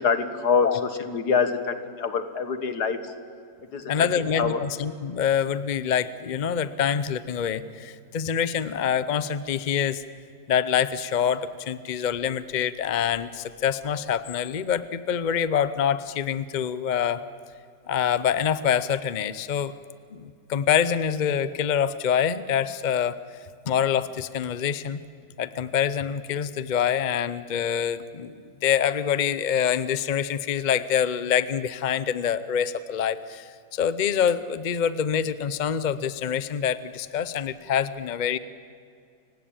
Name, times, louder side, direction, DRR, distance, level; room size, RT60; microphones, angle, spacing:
voice 1, 0.0-3.1 3.7-4.6, left 5 dB, 75° left, 10 dB, 2.1 m, -25 dB
voice 2, 3.9-10.0 10.5-17.2 17.9-19.7 20.1-23.2 23.7-25.0 25.4-38.4, left 8 dB, 45° left, 15 dB, 0.6 m, -25 dB
29.5 x 16.5 x 8.7 m, 2.4 s
omnidirectional pair, 1.7 m